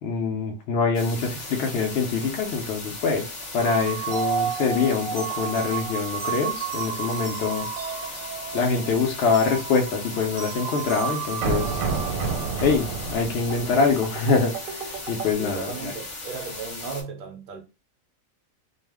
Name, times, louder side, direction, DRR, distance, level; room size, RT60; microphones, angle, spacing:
voice 1, 0.0-7.7 8.1-8.2 8.5-11.8 12.6-15.9, left 4 dB, 65° left, 0.8 m, -25 dB
sound 1, 0.9-17.0, left 2 dB, 40° left, 0.4 m, -37 dB
sound 2, 3.6-15.3, right 6 dB, 90° right, 1.0 m, -31 dB
voice 2, 15.4-17.6, right 5 dB, 65° right, 0.5 m, -36 dB
2.4 x 2.1 x 3.3 m
omnidirectional pair, 1.4 m